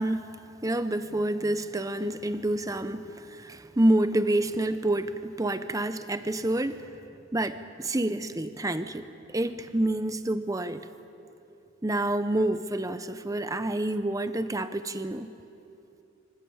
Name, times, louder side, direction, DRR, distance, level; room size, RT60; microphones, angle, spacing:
voice 1, 0.0-6.8 7.3-10.9 11.8-15.3, right 1 dB, 15° right, 11 dB, 0.8 m, -28 dB
25.5 x 24.5 x 8.7 m, 2.8 s
head